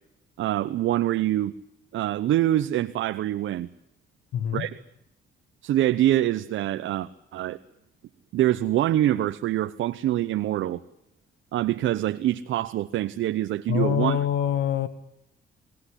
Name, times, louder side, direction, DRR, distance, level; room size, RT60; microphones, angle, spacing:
voice 1, 0.4-1.5 1.9-3.7 4.5-4.7 5.6-7.6 8.3-10.8 11.5-14.2, right 13 dB, 80° right, 9 dB, 0.9 m, -25 dB
voice 2, 4.3-4.7 13.7-14.9, left 9 dB, 75° left, 14 dB, 1.7 m, -25 dB
23.5 x 18.0 x 10.0 m, 0.83 s
cardioid pair, 90°, 20 cm